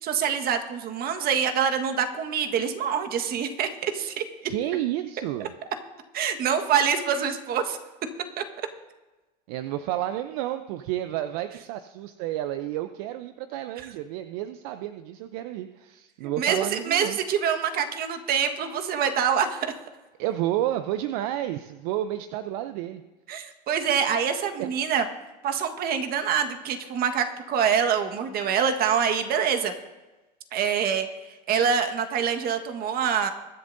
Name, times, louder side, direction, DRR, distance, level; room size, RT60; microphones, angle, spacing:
voice 1, 0.0-4.2 6.1-7.8 16.2-19.7 23.3-25.0 25.4-29.7 30.5-31.1 31.5-33.3, right 7 dB, 45° right, 6 dB, 1.5 m, -25 dB
voice 2, 4.5-5.5 9.5-17.2 20.2-23.0 24.6-24.8, right 13 dB, 65° right, 10 dB, 0.6 m, -31 dB
23.0 x 10.5 x 2.7 m, 1.1 s
hypercardioid pair, 95°, 21 cm